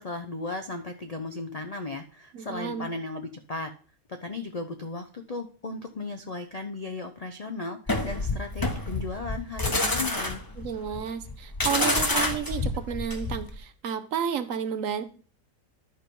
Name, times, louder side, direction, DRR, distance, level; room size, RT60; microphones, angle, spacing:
voice 1, 0.0-3.7 4.1-10.4, left 3 dB, 60° left, 6 dB, 0.4 m, -36 dB
voice 2, 2.3-2.9 10.6-15.0, right 8 dB, 65° right, 12 dB, 1.1 m, -31 dB
sound 1, 7.9-13.6, left 2 dB, 15° left, 0.8 m, -28 dB
11.0 x 4.6 x 5.2 m, 0.40 s
omnidirectional pair, 1.7 m